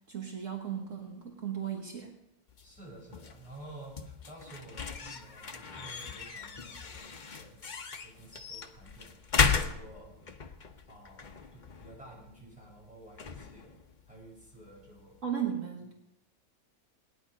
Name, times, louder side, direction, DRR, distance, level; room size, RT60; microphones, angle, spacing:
voice 1, 0.1-2.1 15.2-15.9, right 8 dB, 60° right, 1 dB, 1.6 m, -36 dB
sound 1, 2.5-15.2, left 5 dB, 35° left, 0.9 m, -36 dB
voice 2, 2.6-7.6 7.9-9.1 9.6-10.2 10.9-13.7 14.1-15.2, right 2 dB, 5° right, -5 dB, 7.0 m, -51 dB
18.5 x 10.5 x 5.0 m, 0.86 s
omnidirectional pair, 1.6 m